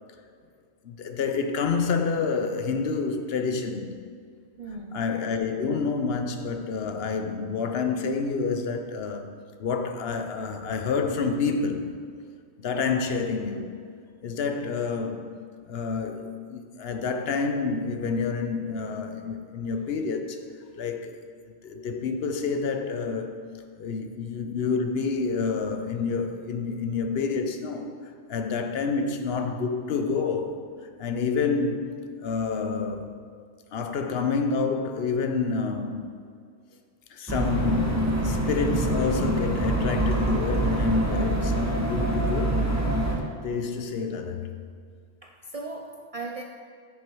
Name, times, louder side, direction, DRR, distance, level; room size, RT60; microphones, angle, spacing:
voice 1, 0.8-4.0 4.9-9.3 9.6-11.9 12.6-13.7 14.2-15.3 15.6-20.4 20.8-21.1 21.6-23.4 23.8-30.7 31.0-33.1 33.7-36.1 37.1-42.7 43.4-44.5, left 5 dB, 55° left, 0.8 m, -28 dB
voice 2, 4.6-5.0 41.1-41.3 45.2-46.4, right 2 dB, 70° right, 0.3 m, -37 dB
sound 1, 37.3-43.2, right 1 dB, 15° right, 1.1 m, -25 dB
9.4 x 6.4 x 4.6 m
omnidirectional pair, 1.4 m